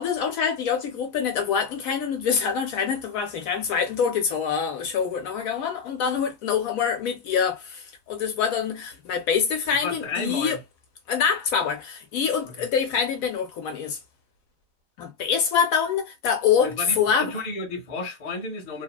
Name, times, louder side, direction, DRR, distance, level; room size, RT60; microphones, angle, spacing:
voice 1, 0.0-10.6 11.1-14.0 15.0-17.3, left 7 dB, 70° left, 0.9 m, -25 dB
voice 2, 9.7-10.6 12.5-12.7 16.6-18.8, left 3 dB, 45° left, 0.5 m, -32 dB
2.7 x 2.0 x 2.2 m
omnidirectional pair, 1.7 m